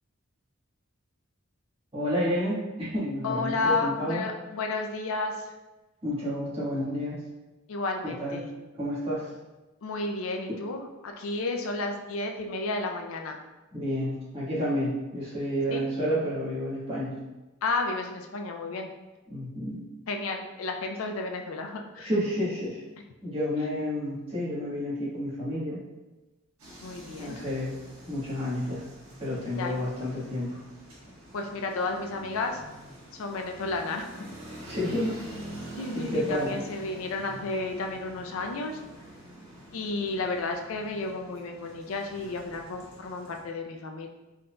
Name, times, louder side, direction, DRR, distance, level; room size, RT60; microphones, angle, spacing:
voice 1, 1.9-4.2 6.0-7.2 8.0-8.4 8.8-9.3 13.7-17.2 19.3-19.8 22.0-22.8 23.2-25.8 27.2-27.8 28.1-28.8 29.2-30.6 34.6-35.2 35.9-36.6, equal, 30° right, -9 dB, 1.3 m, -30 dB
voice 2, 3.2-5.5 7.7-8.4 9.8-13.4 15.7-15.8 17.6-18.9 20.1-22.1 26.8-27.5 29.6-29.8 31.3-32.6 33.1-34.3 35.8-38.8 39.7-44.1, left 3 dB, 75° left, 4 dB, 0.4 m, -32 dB
sound 1, 26.6-43.4, right 1 dB, 85° right, 1.3 m, -46 dB
3.9 x 3.7 x 2.2 m, 1.1 s
head